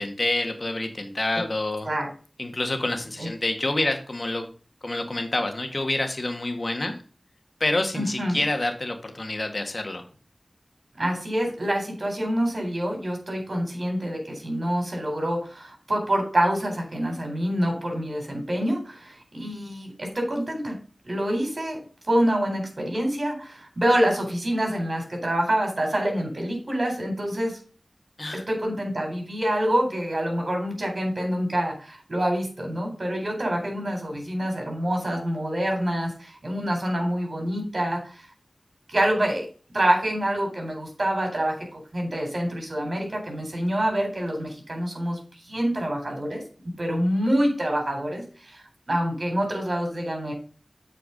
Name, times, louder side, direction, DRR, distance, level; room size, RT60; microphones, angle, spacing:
voice 1, 0.0-1.9 2.4-4.5 4.8-6.9 7.6-10.0 28.2-28.4, left 2 dB, 55° left, 5 dB, 1.8 m, -27 dB
voice 2, 7.9-8.4 11.0-20.8 21.0-21.8 22.1-27.6 28.5-38.3 38.9-39.5 39.7-45.2 45.4-46.4 46.8-50.3, right 1 dB, 60° right, 2 dB, 4.2 m, -26 dB
8.3 x 4.9 x 5.2 m, 0.39 s
wide cardioid pair, 40°, 0 cm